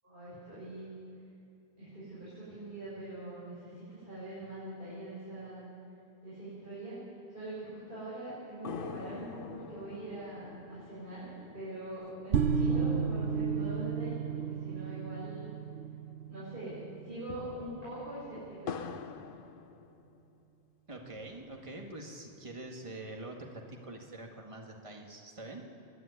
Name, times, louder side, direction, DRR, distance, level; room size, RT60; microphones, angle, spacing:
voice 1, 0.0-0.9 1.8-5.7 6.2-15.5 16.3-18.8, right 1 dB, 55° right, -11 dB, 7.1 m, -43 dB
sound 1, 8.6-16.2 16.5-16.6 17.1-20.4 20.9-21.9, left 6 dB, 55° left, 0.9 m, -46 dB
sound 2, 12.3-17.5, right 6 dB, 75° right, 1.0 m, -32 dB
voice 2, 20.9-25.6, right 2 dB, 30° right, 1 dB, 1.9 m, -45 dB
24.0 x 11.0 x 9.7 m, 2.6 s
omnidirectional pair, 1.1 m